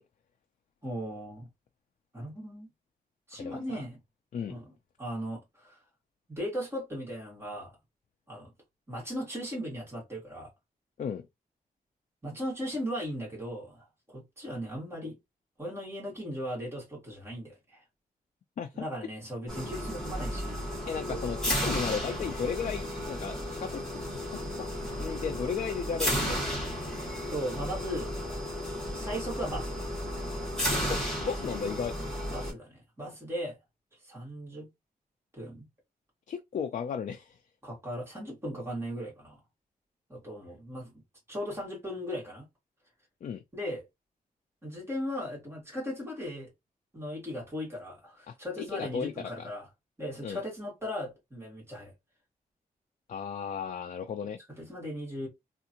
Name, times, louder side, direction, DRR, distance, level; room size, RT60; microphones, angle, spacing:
voice 1, 0.8-1.5 2.1-2.7 3.3-4.0 4.5-4.7 5.0-5.8 6.3-7.7 8.3-8.5 8.9-10.5 12.2-15.2 15.6-17.8 18.8-20.7 21.1-21.2 27.3-28.1 28.9-29.8 32.3-33.6 34.0-34.7 35.3-35.7 37.6-39.4 40.1-41.0 41.3-42.5 43.5-43.9 44.6-46.5 46.9-49.7 50.0-51.9 54.5-55.3, equal, 15° right, 2.0 m, -37 dB
sound 1, 19.5-32.5, equal, 5° left, 1.8 m, -33 dB
voice 2, 20.9-23.8 24.3-24.7 25.0-26.5 30.7-31.9 36.3-37.4 43.2-43.4 48.3-49.5 50.2-50.4 53.1-54.4, left 6 dB, 55° left, 0.4 m, -35 dB
3.5 x 2.5 x 2.8 m
wide cardioid pair, 170°, 15 cm